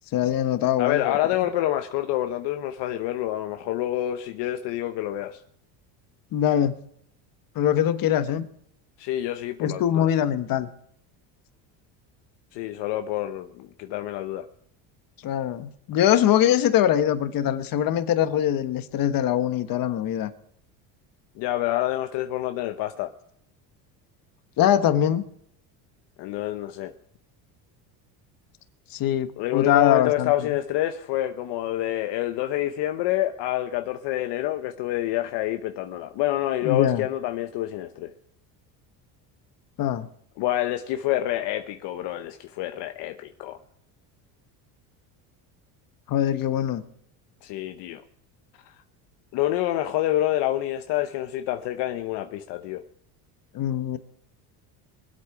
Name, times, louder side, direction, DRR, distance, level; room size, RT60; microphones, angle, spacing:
voice 1, 0.1-1.2 6.3-6.8 7.5-8.5 9.6-10.7 15.2-20.3 24.6-25.2 28.9-30.3 36.6-37.0 39.8-40.1 46.1-46.8 53.5-54.0, left 11 dB, 50° left, 1.3 m, -22 dB
voice 2, 0.8-5.4 9.0-10.1 12.5-14.5 21.4-23.1 26.2-26.9 29.4-38.1 40.4-43.6 47.4-48.0 49.3-52.8, left 13 dB, 70° left, 0.9 m, -27 dB
23.0 x 8.3 x 4.8 m
supercardioid pair, 110°, 43 cm